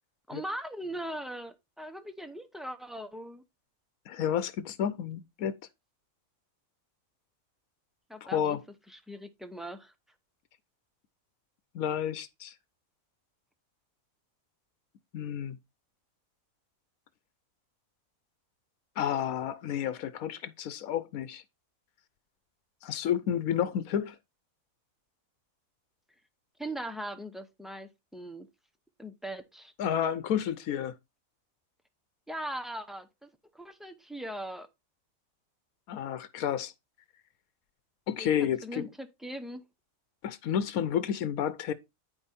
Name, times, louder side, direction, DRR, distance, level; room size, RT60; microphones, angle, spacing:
voice 1, 0.3-3.4 8.1-8.6 8.9-9.9 26.6-28.5 29.0-29.7 32.3-33.3 33.5-34.7 38.2-39.6, right 1 dB, ahead, 0.6 m, -40 dB
voice 2, 4.1-5.6 8.2-8.6 11.7-12.5 15.1-15.6 19.0-21.4 22.8-24.2 29.8-30.9 35.9-36.7 38.1-38.9 40.2-41.7, left 9 dB, 85° left, 1.2 m, -31 dB
9.5 x 5.1 x 4.2 m
omnidirectional pair, 1.4 m